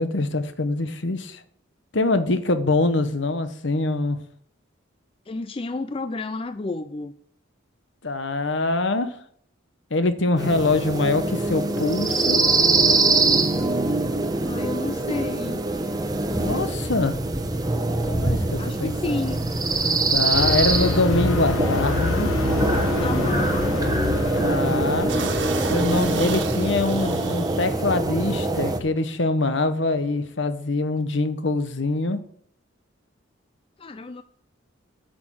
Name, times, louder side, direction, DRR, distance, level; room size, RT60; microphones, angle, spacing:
voice 1, 0.0-1.4 1.9-4.2 8.0-9.1 9.9-12.4 16.4-17.1 17.9-19.2 20.1-22.3 24.4-25.1 25.7-32.2, left 2 dB, 60° left, 1.1 m, -24 dB
voice 2, 5.3-7.1 14.4-15.6 18.6-19.5 23.0-23.7 33.8-34.2, left 3 dB, 25° left, 0.4 m, -31 dB
sound 1, 10.4-28.8, right 2 dB, 20° right, 1.0 m, -23 dB
sound 2, 20.3-25.6, left 3 dB, 85° left, 1.0 m, -27 dB
sound 3, 24.2-24.3 24.6-24.7 25.1-27.9 28.6-28.9 29.1-30.3, right 5 dB, 60° right, 1.6 m, -35 dB
8.7 x 6.4 x 7.5 m
head